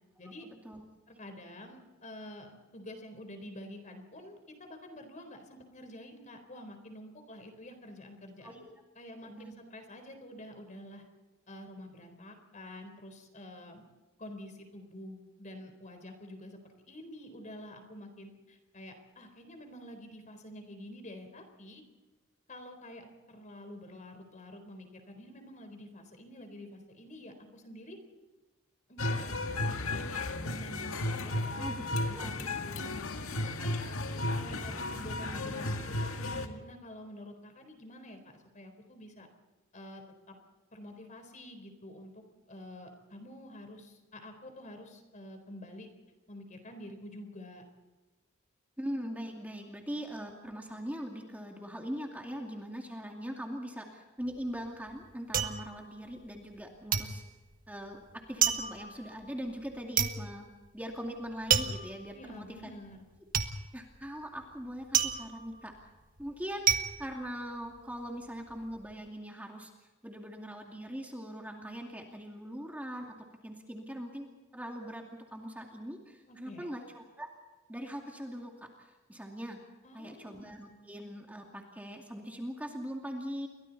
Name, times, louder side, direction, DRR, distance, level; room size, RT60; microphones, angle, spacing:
voice 1, 0.4-0.8 8.4-8.7 9.2-9.5 31.5-31.8 32.1-32.4 48.8-57.2 57.7-60.5 60.7-62.7 63.7-65.7 66.2-69.7 70.0-73.1 73.4-74.3 74.5-77.3 77.7-79.6 79.9-83.5, equal, 10° right, 1 dB, 2.4 m, -41 dB
voice 2, 1.2-8.6 9.0-11.0 11.5-13.8 14.2-21.8 22.5-28.0 28.9-31.7 32.1-32.2 32.8-33.7 34.3-39.3 39.7-40.4 40.7-45.9 46.3-47.6 62.1-63.0 76.3-76.7 79.8-80.4, left 1 dB, 35° left, 6 dB, 4.0 m, -48 dB
sound 1, 29.0-36.5, left 2 dB, 85° left, 2.0 m, -34 dB
sound 2, 54.2-56.6 56.9-68.0 68.4-68.9, right 9 dB, 45° right, 1.5 m, -32 dB
29.5 x 23.0 x 4.2 m, 1.2 s
head